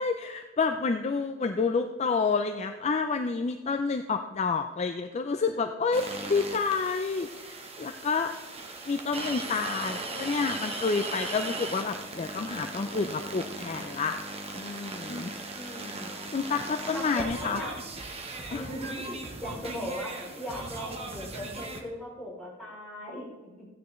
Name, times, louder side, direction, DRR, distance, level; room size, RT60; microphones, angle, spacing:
voice 1, 0.0-8.3 8.9-14.2 14.5-15.3 16.3-17.6 18.5-18.7, left 4 dB, 30° left, 7 dB, 0.4 m, -29 dB
sound 1, 5.9-21.8, right 2 dB, 30° right, 1.0 m, -38 dB
voice 2, 15.5-16.2 16.9-17.7 18.5-23.7, equal, 5° left, -6 dB, 3.2 m, -39 dB
15.0 x 9.3 x 3.1 m, 1.4 s
head